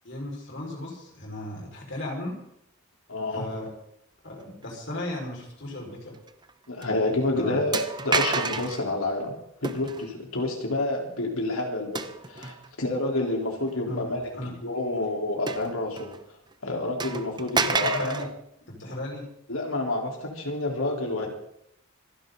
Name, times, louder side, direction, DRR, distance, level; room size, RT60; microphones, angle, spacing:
voice 1, 0.0-2.4 3.3-3.7 4.2-6.2 7.3-7.6 13.9-14.1 14.3-14.5 17.6-18.3 18.7-19.3, left 1 dB, 60° left, -1 dB, 5.5 m, -35 dB
voice 2, 3.1-3.5 6.7-9.3 9.6-14.2 14.6-16.1 16.6-18.3 19.5-21.3, left 2 dB, 85° left, 0 dB, 4.1 m, -28 dB
sound 1, 6.3-6.5 6.8-6.9 7.7-8.8 9.6-10.1 11.9-12.7 13.3-13.4 15.5-16.2 16.5-16.6 17.0-18.3, right 4 dB, 20° right, 0.8 m, -29 dB
26.5 x 11.0 x 4.0 m, 0.74 s
head